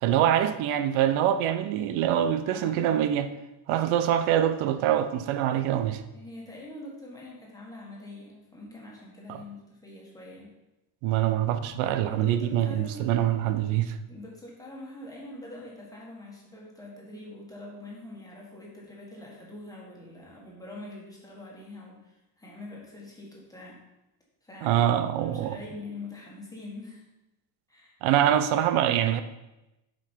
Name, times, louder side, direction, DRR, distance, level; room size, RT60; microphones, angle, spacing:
voice 1, 0.0-3.3 3.7-6.0 9.3-9.4 11.0-14.0 24.6-25.6 28.0-29.2, right 11 dB, 80° right, 0.7 m, -24 dB
voice 2, 2.5-3.0 6.1-10.5 12.1-13.1 14.1-23.8 24.4-24.9 25.2-27.0 27.7-28.0, left 2 dB, 5° left, 1.5 m, -44 dB
7.2 x 5.1 x 4.5 m
cardioid pair, 160°, 48 cm